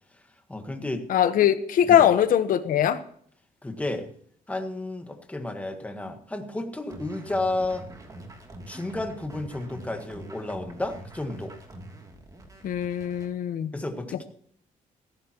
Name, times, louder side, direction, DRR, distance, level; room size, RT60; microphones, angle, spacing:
voice 1, 0.5-1.0 1.9-2.1 3.6-4.1 4.5-7.9 8.7-11.6 13.7-14.2, left 2 dB, 10° left, 6 dB, 1.6 m, -32 dB
voice 2, 1.1-3.0 12.6-13.7, left 10 dB, 70° left, 11 dB, 1.1 m, -21 dB
sound 1, 6.9-13.3, right 1 dB, 25° right, 2.8 m, -44 dB
17.5 x 15.0 x 3.0 m, 0.62 s
cardioid pair, 140°, 14 cm